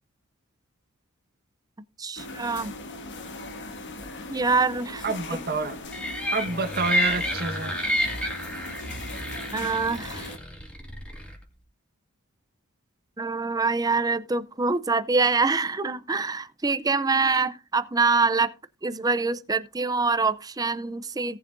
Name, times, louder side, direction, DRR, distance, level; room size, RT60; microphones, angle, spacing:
voice 1, 2.0-2.7 4.3-5.0 9.5-10.3 13.2-18.5 18.8-21.4, right 4 dB, 15° right, 0.5 m, -25 dB
sound 1, 2.2-10.4, left 2 dB, 55° left, 1.5 m, -39 dB
voice 2, 5.0-5.8 6.3-7.7, right 3 dB, 45° right, 1.4 m, -28 dB
sound 2, 5.9-11.4, equal, 5° left, 2.3 m, -30 dB
17.5 x 7.0 x 2.6 m
head